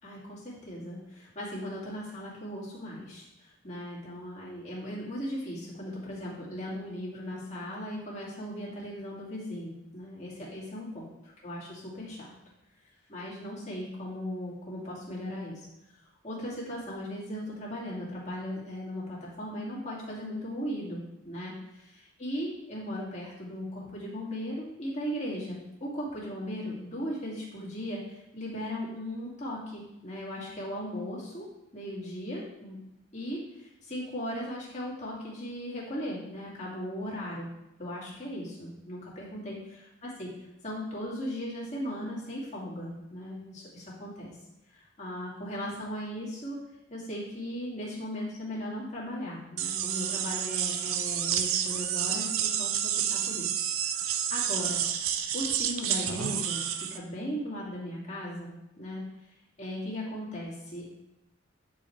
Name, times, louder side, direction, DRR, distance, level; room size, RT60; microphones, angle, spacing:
voice 1, 0.0-12.3 13.1-15.7 16.2-31.4 31.7-32.8 33.1-37.5 37.8-40.3 40.6-44.3 44.7-46.6 46.9-53.6 53.9-54.0 54.3-54.8 55.3-59.0 59.6-60.9, equal, 35° left, -6 dB, 2.3 m, -37 dB
sound 1, 49.6-57.0, right 9 dB, 90° right, 0.5 m, -30 dB
9.5 x 5.2 x 3.2 m, 0.90 s
head